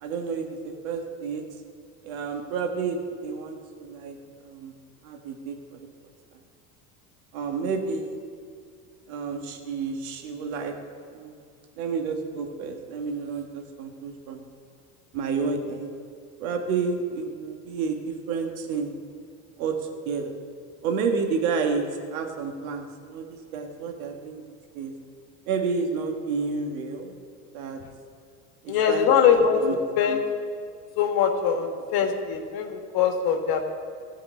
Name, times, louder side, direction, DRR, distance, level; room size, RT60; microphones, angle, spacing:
voice 1, 0.0-1.4 2.0-4.2 4.4-4.8 5.0-5.8 7.3-8.2 9.1-10.7 11.1-11.4 11.8-14.5 15.1-16.0 16.4-18.9 19.6-19.8 20.0-20.3 20.8-21.8 22.1-24.4 24.7-24.9 25.5-27.2 27.5-27.8 28.6-29.7, right 5 dB, 80° right, 3 dB, 1.6 m, -30 dB
voice 2, 28.7-29.6 30.0-30.2 31.0-33.6, left 7 dB, 60° left, 4 dB, 1.5 m, -22 dB
14.0 x 4.8 x 8.4 m, 2.2 s
supercardioid pair, 90°, 42 cm